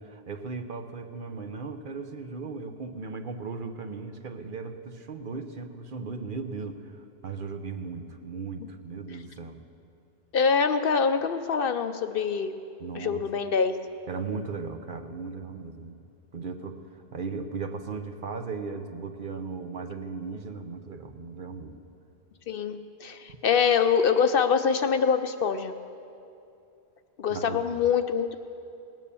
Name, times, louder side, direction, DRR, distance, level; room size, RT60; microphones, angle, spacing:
voice 1, 0.0-9.6 12.8-13.2 14.1-16.0 16.3-16.8 17.1-21.8 27.3-27.8, right 4 dB, 55° right, 7 dB, 0.9 m, -37 dB
voice 2, 10.3-12.5 12.9-13.8 22.5-25.7 27.2-28.4, left 6 dB, 60° left, 9 dB, 0.7 m, -24 dB
18.5 x 9.2 x 6.9 m, 2.6 s
omnidirectional pair, 1.1 m